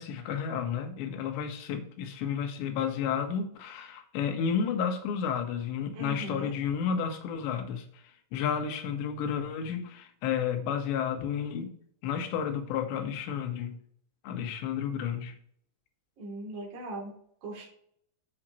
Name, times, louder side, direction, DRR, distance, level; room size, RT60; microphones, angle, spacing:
voice 1, 0.0-8.0 8.3-11.7 12.0-13.8 14.2-15.3, left 7 dB, 70° left, 4 dB, 3.4 m, -31 dB
voice 2, 5.9-6.6 16.2-17.1 17.4-17.6, right 1 dB, 35° right, -4 dB, 3.4 m, -39 dB
13.5 x 5.6 x 3.1 m, 0.63 s
omnidirectional pair, 5.6 m